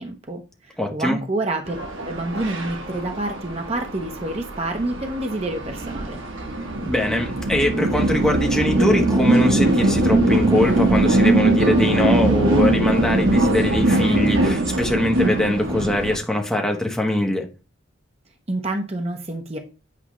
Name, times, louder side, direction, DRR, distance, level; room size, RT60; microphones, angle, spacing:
voice 1, 0.0-1.8 2.0-6.2 18.5-19.6, right 2 dB, 30° right, 0.9 m, -28 dB
voice 2, 0.8-1.2 6.8-17.5, left 1 dB, 5° left, 1.0 m, -22 dB
sound 1, 1.7-16.2, right 2 dB, 70° right, 1.3 m, -21 dB
8.5 x 4.8 x 3.1 m
head